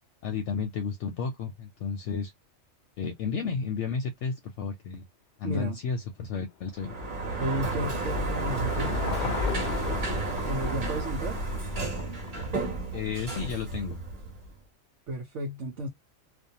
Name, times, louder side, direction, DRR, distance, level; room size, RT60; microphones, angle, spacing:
voice 1, 0.2-2.3 3.0-5.0 5.4-7.0 12.9-14.0, left 5 dB, 70° left, 0.8 m, -32 dB
voice 2, 5.4-5.8 7.4-9.0 10.4-11.4 15.1-15.9, right 1 dB, 65° right, 1.0 m, -33 dB
Car passing by / Engine, 6.6-13.1, left 7 dB, 90° left, 0.4 m, -39 dB
Sliding door, 6.8-14.6, right 2 dB, 40° right, 1.2 m, -31 dB
2.6 x 2.2 x 2.7 m
omnidirectional pair, 1.4 m